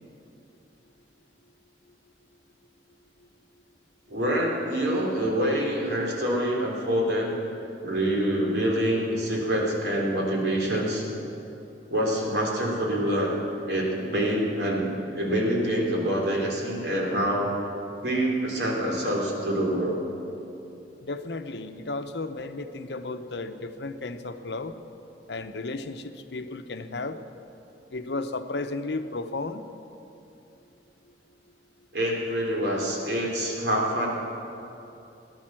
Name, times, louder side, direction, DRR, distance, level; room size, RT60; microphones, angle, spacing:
voice 1, 4.1-7.4 7.8-11.0 11.9-14.9 15.2-17.5 18.0-20.0 31.9-34.1, right 1 dB, 70° right, -2 dB, 3.5 m, -26 dB
voice 2, 21.0-24.7 25.3-27.2 27.9-29.7, left 3 dB, 70° left, 9 dB, 0.8 m, -34 dB
18.0 x 10.5 x 7.6 m, 2.9 s
head